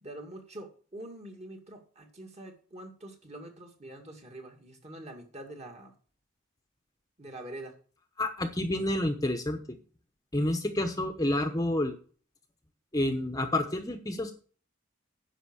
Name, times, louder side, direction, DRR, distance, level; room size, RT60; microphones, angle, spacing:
voice 1, 0.0-5.9 7.2-7.7, right 1 dB, 35° right, 3 dB, 2.2 m, -45 dB
voice 2, 8.2-9.6 10.3-12.0 12.9-14.3, left 1 dB, 20° left, 6 dB, 0.9 m, -29 dB
10.0 x 6.2 x 6.3 m, 0.41 s
head